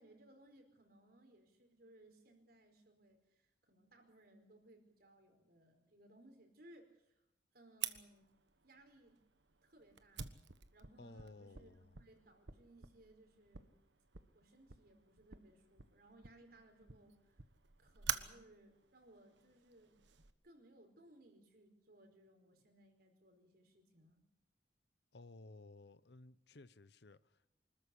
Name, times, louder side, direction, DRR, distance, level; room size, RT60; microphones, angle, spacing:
voice 1, 0.0-7.2 7.5-8.3 8.6-9.2 9.6-10.3 10.7-13.8 14.3-17.4 17.8-20.0 20.4-24.2, right 1 dB, 55° right, 4.8 m, -64 dB
Fire, 7.8-20.3, right 9 dB, 80° right, 1.3 m, -48 dB
voice 2, 11.0-12.0 25.1-27.5, left 2 dB, 65° left, 0.8 m, -57 dB
25.0 x 14.0 x 10.0 m
head